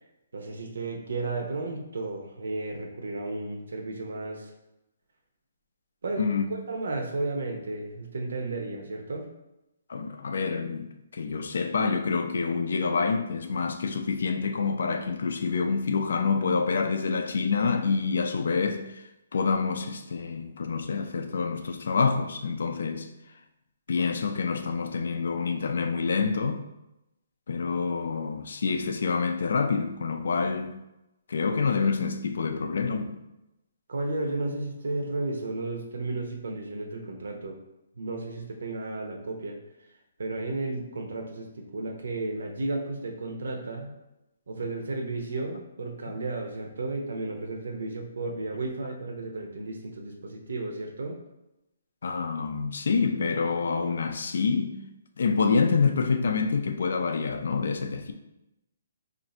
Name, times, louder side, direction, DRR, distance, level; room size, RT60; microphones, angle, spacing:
voice 1, 0.3-4.5 6.0-6.3 6.7-9.3 33.9-37.6 38.0-39.6 40.2-43.9 44.5-51.2, right 2 dB, 70° right, 0.7 m, -33 dB
voice 2, 9.9-19.0 19.3-23.1 23.9-26.6 27.5-30.7 31.3-33.2 46.1-46.2 52.0-54.8 55.2-58.1, left 5 dB, 65° left, 0.4 m, -27 dB
2.5 x 2.5 x 4.1 m
hypercardioid pair, 175°, 0 cm